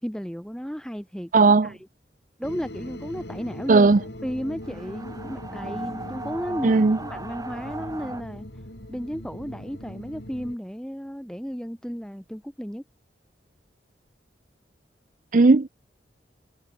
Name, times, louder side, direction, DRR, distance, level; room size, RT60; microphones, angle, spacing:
voice 1, 0.0-1.3 1.6-1.9 2.4-3.9 4.2-8.5 8.9-12.8, equal, 5° left, 2.7 m, -34 dB
voice 2, 1.3-1.7 3.7-4.0 6.6-7.0 15.3-15.7, right 3 dB, 45° right, 0.5 m, -16 dB
sound 1, 2.4-10.6, left 1 dB, 70° left, 5.5 m, -40 dB
sound 2, 4.6-8.2, right 2 dB, 20° right, 5.2 m, -38 dB
head